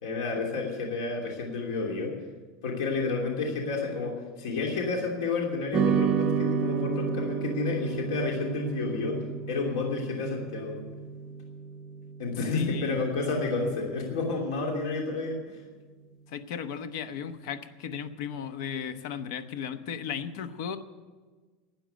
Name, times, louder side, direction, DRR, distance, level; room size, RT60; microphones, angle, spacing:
voice 1, 0.0-2.1 2.6-9.1 9.5-10.8 12.2-15.6, left 3 dB, 80° left, 0 dB, 2.9 m, -30 dB
sound 1, 5.7-14.3, right 6 dB, 25° right, 0.8 m, -31 dB
voice 2, 12.5-13.0 16.3-20.8, left 7 dB, 65° left, 11 dB, 1.0 m, -35 dB
13.0 x 8.9 x 9.2 m, 1.4 s
supercardioid pair, 165°, 2 cm